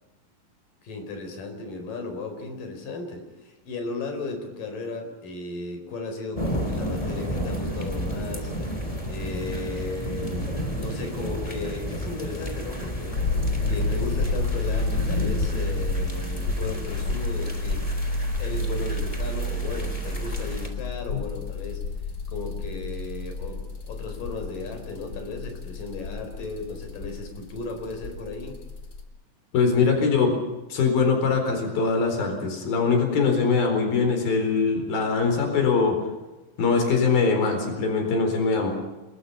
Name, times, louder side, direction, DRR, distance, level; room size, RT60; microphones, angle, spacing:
voice 1, 0.8-8.5 9.1-10.5 10.8-13.1 13.7-17.8 18.4-21.8 22.3-23.6 23.9-28.6, left 3 dB, 70° left, 5 dB, 6.1 m, -35 dB
sound 1, 6.4-20.7, equal, 10° left, 3.1 m, -32 dB
sound 2, 13.2-29.0, left 2 dB, 40° left, 2.4 m, -30 dB
voice 2, 29.5-30.4 30.7-36.0 36.6-38.7, left 4 dB, 90° left, 4 dB, 6.0 m, -22 dB
28.0 x 21.5 x 5.7 m, 1.1 s
omnidirectional pair, 4.0 m